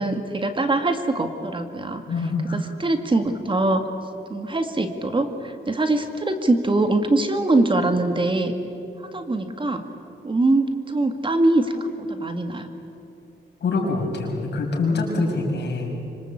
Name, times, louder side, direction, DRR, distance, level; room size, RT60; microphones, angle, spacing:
voice 1, 0.0-2.0 2.5-3.9 4.3-8.5 9.1-9.8 10.2-12.7, right 2 dB, 25° right, 6 dB, 2.0 m, -23 dB
voice 2, 2.1-2.6 13.6-16.0, left 3 dB, 70° left, 0 dB, 6.2 m, -25 dB
25.5 x 25.5 x 8.6 m, 2.7 s
cardioid pair, 100°, 18 cm